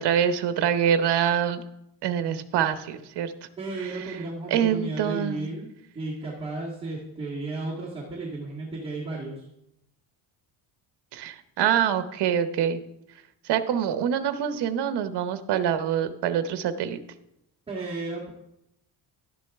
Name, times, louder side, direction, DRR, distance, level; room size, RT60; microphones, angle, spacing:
voice 1, 0.0-1.6 2.0-3.3 3.8-4.2 4.5-5.5 11.1-12.8 13.5-17.0, right 9 dB, 65° right, 10 dB, 0.9 m, -25 dB
voice 2, 3.6-9.5 17.7-18.3, right 2 dB, 10° right, -7 dB, 1.7 m, -34 dB
12.0 x 9.6 x 3.5 m, 0.83 s
cardioid pair, 175°, 43 cm